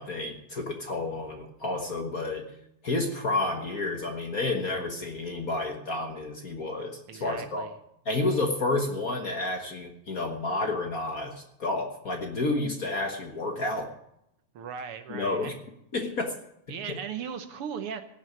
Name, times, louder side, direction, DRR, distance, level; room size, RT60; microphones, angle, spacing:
voice 1, 0.0-2.5 2.8-7.7 8.0-13.9 15.1-15.5 15.9-16.3, left 2 dB, 45° left, 3 dB, 1.2 m, -30 dB
voice 2, 7.1-7.7 14.5-15.5 16.7-18.0, right 7 dB, 65° right, 9 dB, 1.6 m, -37 dB
17.5 x 6.3 x 9.3 m, 0.80 s
omnidirectional pair, 3.3 m